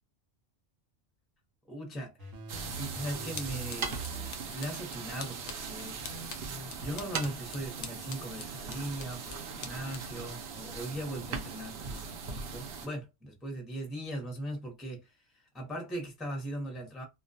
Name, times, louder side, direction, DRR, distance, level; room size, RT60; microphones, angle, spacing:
voice 1, 1.7-2.4 2.8-4.0 4.5-6.0 6.8-17.0, right 1 dB, ahead, 0.5 m, -39 dB
sound 1, 2.2-4.5 4.9-6.7, right 3 dB, 80° right, 1.0 m, -44 dB
sound 2, 2.5-12.9, right 5 dB, 65° right, 0.7 m, -40 dB
sound 3, 3.4-11.4, left 5 dB, 70° left, 0.4 m, -49 dB
2.2 x 2.2 x 2.6 m
omnidirectional pair, 1.3 m